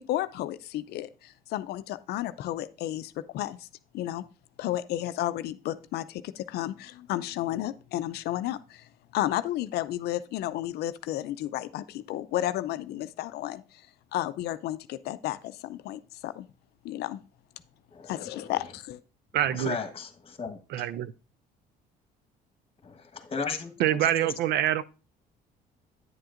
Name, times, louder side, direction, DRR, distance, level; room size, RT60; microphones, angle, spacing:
voice 1, 0.0-3.7 3.9-4.2 4.6-8.9 9.1-13.6 14.1-16.5 16.8-17.2 18.1-19.0, left 14 dB, 75° left, 0.5 m, -32 dB
voice 2, 17.9-18.5 19.5-20.6 22.8-24.3, left 5 dB, 35° left, 1.2 m, -36 dB
voice 3, 19.3-19.8 20.7-21.1 23.8-24.8, right 12 dB, 75° right, 0.4 m, -25 dB
9.3 x 7.7 x 2.5 m
cardioid pair, 110°, 17 cm